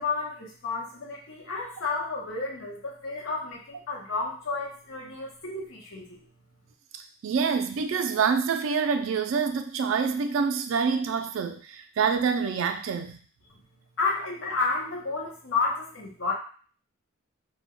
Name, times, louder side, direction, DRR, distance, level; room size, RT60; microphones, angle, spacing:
voice 1, 0.0-6.2 14.0-16.3, left 4 dB, 75° left, -3 dB, 0.8 m, -31 dB
voice 2, 7.2-13.2, right 5 dB, 85° right, 7 dB, 0.3 m, -26 dB
2.2 x 2.1 x 3.6 m, 0.41 s
head